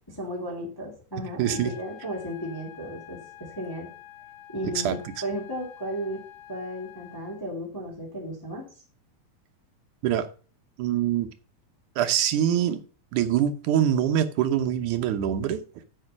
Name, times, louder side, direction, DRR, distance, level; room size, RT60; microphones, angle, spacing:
voice 1, 0.1-3.9 4.5-6.2 6.5-8.7, equal, 5° left, -2 dB, 2.7 m, -34 dB
sound 1, 1.4-7.4, left 12 dB, 75° left, 2.3 m, -47 dB
voice 2, 1.4-1.7 4.8-5.0 10.0-10.3 10.8-11.3 12.0-12.8 13.1-15.8, right 10 dB, 75° right, 7 dB, 2.4 m, -24 dB
8.2 x 7.6 x 5.9 m, 0.37 s
omnidirectional pair, 3.6 m